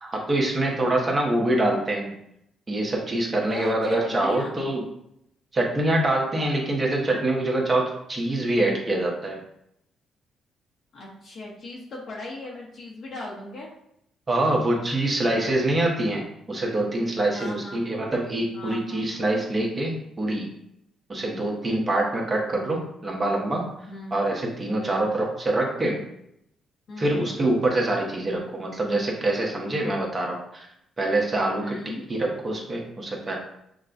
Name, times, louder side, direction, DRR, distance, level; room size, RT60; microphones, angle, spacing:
voice 1, 0.0-2.1 2.7-4.9 5.5-9.4 14.3-20.5 21.1-23.7 24.1-26.0 27.0-30.7 31.0-31.8 32.1-33.4, right 1 dB, 30° right, -1 dB, 1.1 m, -25 dB
voice 2, 3.5-4.6 10.9-13.7 17.3-17.9 18.5-19.3 21.1-21.4 23.9-24.2 24.8-25.1 26.9-27.3 31.6-32.0, left 1 dB, 65° left, -4 dB, 0.9 m, -38 dB
6.3 x 2.3 x 2.6 m, 0.77 s
cardioid pair, 90°, 0 cm